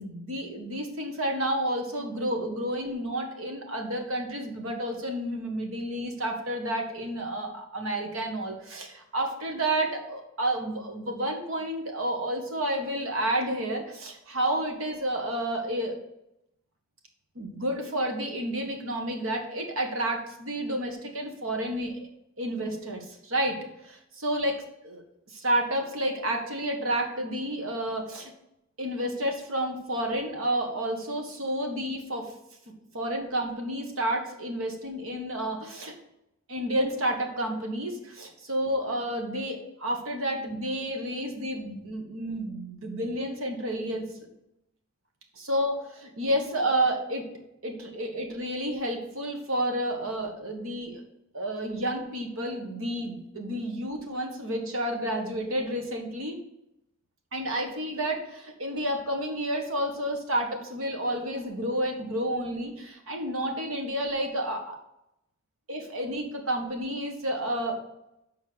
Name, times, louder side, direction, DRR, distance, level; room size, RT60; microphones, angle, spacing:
voice 1, 0.0-15.9 17.3-22.1 22.4-25.0 25.3-28.3 28.8-32.3 32.9-35.9 36.5-44.1 45.3-47.2 47.6-51.0 51.3-56.4 57.3-64.8 65.7-67.8, right 1 dB, 75° right, 3 dB, 1.6 m, -30 dB
6.9 x 4.7 x 6.2 m, 0.83 s
head